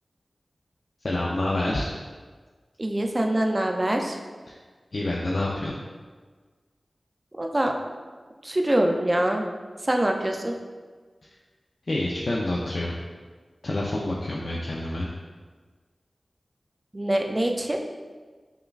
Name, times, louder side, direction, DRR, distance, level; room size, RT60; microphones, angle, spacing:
voice 1, 1.0-2.0 4.9-5.8 11.9-13.0 13.6-15.1, left 1 dB, 65° left, -3 dB, 0.3 m, -27 dB
voice 2, 2.8-4.2 7.3-7.7 8.4-9.4 9.8-10.5 16.9-17.8, right 1 dB, 30° right, 3 dB, 0.4 m, -24 dB
5.3 x 2.2 x 2.3 m, 1.4 s
wide cardioid pair, 65°, 0 cm